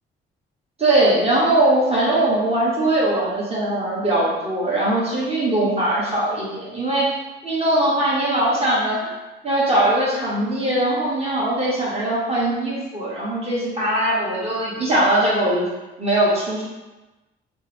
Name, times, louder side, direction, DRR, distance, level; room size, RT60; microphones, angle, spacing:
voice 1, 0.8-7.1 7.4-9.1 9.4-15.7 16.0-16.6, right 1 dB, 30° right, -7 dB, 1.4 m, -20 dB
3.3 x 2.1 x 3.3 m, 1.1 s
cardioid pair, 90°, 20 cm